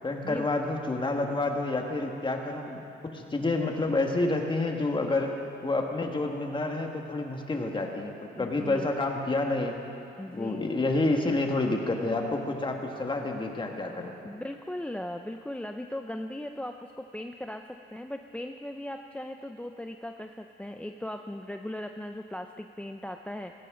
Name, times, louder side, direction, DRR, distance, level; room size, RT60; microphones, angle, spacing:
voice 1, 0.0-5.3 5.6-9.8 10.3-14.2, left 2 dB, 25° left, 2 dB, 1.8 m, -29 dB
voice 2, 8.3-8.9 10.2-10.7 14.2-23.5, left 1 dB, 5° left, 5 dB, 0.5 m, -38 dB
17.0 x 17.0 x 3.9 m, 2.7 s
cardioid pair, 90°, 20 cm